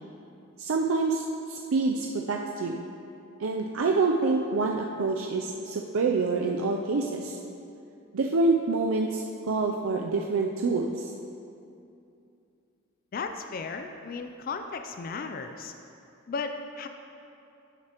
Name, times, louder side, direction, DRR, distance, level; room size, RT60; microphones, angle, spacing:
voice 1, 0.6-2.8 3.4-7.4 8.1-11.1, right 3 dB, 90° right, 2 dB, 0.5 m, -27 dB
voice 2, 13.1-15.7 16.3-16.9, left 4 dB, 45° left, 6 dB, 0.4 m, -35 dB
11.0 x 7.5 x 3.0 m, 2.6 s
head